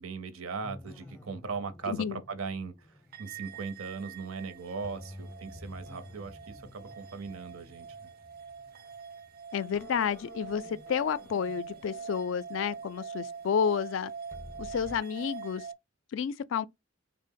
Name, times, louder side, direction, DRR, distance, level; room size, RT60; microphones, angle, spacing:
voice 1, 0.0-8.1, right 4 dB, 85° right, 0.6 m, -39 dB
sound 1, 0.6-4.4 4.8-9.3 9.7-15.0, left 1 dB, 10° left, 0.5 m, -51 dB
voice 2, 1.9-2.2 9.5-14.1 14.6-15.7 16.1-16.7, left 7 dB, 65° left, 0.3 m, -30 dB
sound 2, 3.1-15.7, right 6 dB, 45° right, 0.3 m, -44 dB
3.4 x 2.0 x 3.6 m
head